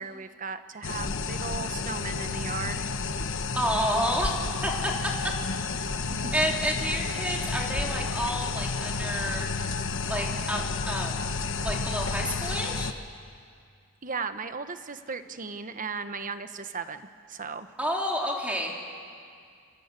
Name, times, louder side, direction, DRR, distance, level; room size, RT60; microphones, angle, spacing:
voice 1, 0.0-3.0 6.1-6.3 14.0-17.0 17.3-17.7, right 4 dB, 40° right, 9 dB, 1.2 m, -36 dB
sound 1, 0.8-12.9, left 4 dB, 65° left, 1.2 m, -31 dB
voice 2, 3.5-4.4 4.6-4.9 6.3-9.5 10.1-11.3 11.6-12.9 17.8-18.7, equal, 5° right, -1 dB, 3.7 m, -29 dB
29.0 x 24.5 x 8.4 m, 2.2 s
head